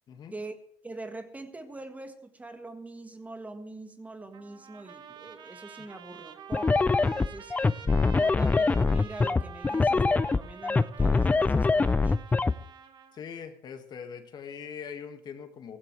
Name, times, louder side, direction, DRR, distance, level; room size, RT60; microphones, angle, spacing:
voice 1, 0.8-7.5 8.1-12.3, right 2 dB, 15° right, 1.5 m, -43 dB
Trumpet, 4.3-13.2, right 7 dB, 50° right, 1.4 m, -48 dB
sound 1, 6.5-12.5, left 3 dB, 15° left, 0.4 m, -23 dB
voice 2, 7.8-8.2 13.1-15.8, left 7 dB, 50° left, 1.9 m, -42 dB
16.5 x 15.5 x 3.3 m
cardioid pair, 100°, 9 cm